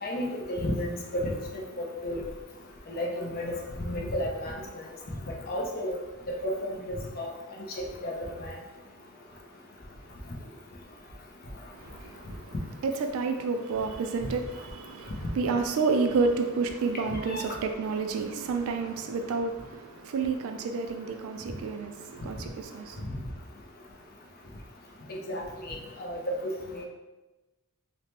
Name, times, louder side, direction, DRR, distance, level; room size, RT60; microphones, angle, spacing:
voice 1, 0.0-2.2 2.9-4.8 5.5-5.9 6.4-7.3 7.8-8.5 14.2-14.3 17.1-17.4 25.3-26.8, left 1 dB, 40° left, 0.5 m, -33 dB
voice 2, 11.7-12.5 12.8-23.1, right 4 dB, 70° right, 0.3 m, -30 dB
3.2 x 2.1 x 2.8 m
head